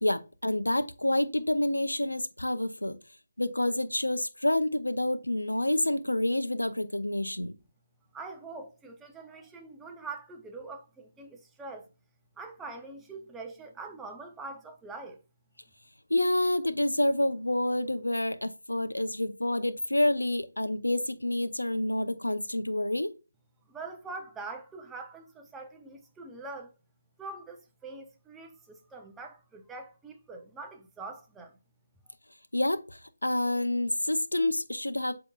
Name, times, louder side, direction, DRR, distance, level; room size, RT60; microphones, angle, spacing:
voice 1, 0.0-3.0 3.4-7.6 16.1-23.1 32.5-35.1, left 1 dB, 90° left, 0.5 m, -28 dB
voice 2, 8.1-11.9 12.4-15.2 23.7-26.7 27.2-31.6 32.1-32.2, right 3 dB, 5° right, 0.6 m, -43 dB
7.9 x 2.8 x 2.3 m
figure-of-eight pair, 155°, 0 cm